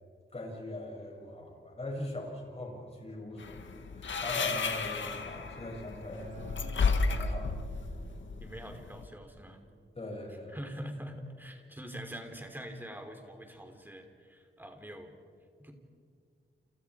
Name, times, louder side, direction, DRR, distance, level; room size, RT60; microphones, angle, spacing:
voice 1, 0.3-6.5 7.0-7.5 7.9-8.0 10.0-10.6, left 1 dB, 30° left, -1 dB, 7.3 m, -41 dB
sound 1, 3.4-9.1, left 4 dB, 75° left, 1.9 m, -33 dB
Acoustic guitar, 6.2-11.4, right 4 dB, 75° right, 5.1 m, -52 dB
voice 2, 8.4-9.6 10.5-15.1 15.6-15.7, equal, 10° right, 5 dB, 3.3 m, -44 dB
30.0 x 29.0 x 4.9 m, 2.1 s
wide cardioid pair, 120°, 20 cm